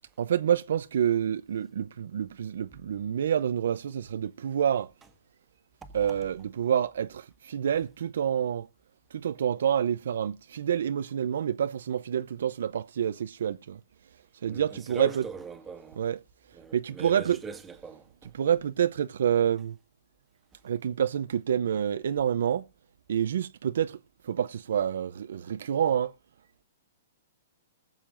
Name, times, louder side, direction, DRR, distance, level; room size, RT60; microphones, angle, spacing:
voice 1, 0.2-4.9 5.9-8.7 9.1-13.8 14.4-15.2 16.0-16.2 16.7-17.4 18.3-19.8 20.6-22.6 23.1-24.0 24.2-26.1, right 9 dB, 75° right, 0.6 m, -28 dB
voice 2, 14.5-16.0 16.5-18.3, right 5 dB, 10° right, 1.6 m, -40 dB
20.5 x 7.4 x 2.5 m
hypercardioid pair, 145°, 0 cm